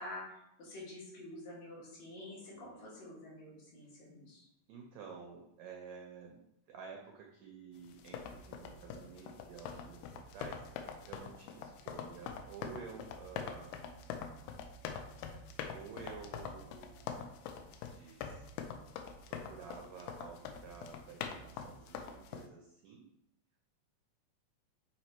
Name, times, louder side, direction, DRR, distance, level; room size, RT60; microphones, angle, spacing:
voice 1, 0.0-4.5, left 1 dB, 70° left, -6 dB, 3.8 m, -48 dB
voice 2, 2.4-2.9 4.7-6.4 6.7-14.1 15.7-18.5 19.3-23.1, right 6 dB, 85° right, 1 dB, 1.5 m, -52 dB
sound 1, 7.9-22.5, left 7 dB, 85° left, 2.3 m, -44 dB
7.8 x 2.9 x 4.3 m, 0.80 s
omnidirectional pair, 4.0 m